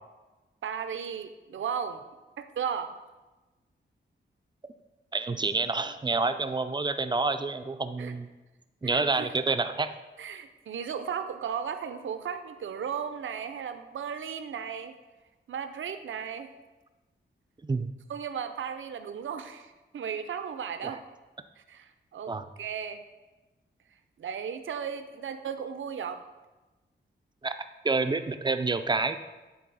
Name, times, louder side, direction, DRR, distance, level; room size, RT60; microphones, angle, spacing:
voice 1, 0.6-2.0 2.4-3.0 8.0-8.1 8.8-9.3 10.2-15.0 15.5-16.5 18.1-21.0 21.6-23.0 24.2-26.2, right 7 dB, 80° right, 9 dB, 0.6 m, -35 dB
voice 2, 5.1-8.3 8.8-9.9 17.6-17.9 20.8-21.0 22.3-22.4 27.4-27.6 27.8-29.2, right 3 dB, 20° right, 9 dB, 0.4 m, -28 dB
10.0 x 4.0 x 4.0 m, 1.2 s
wide cardioid pair, 85°, 20 cm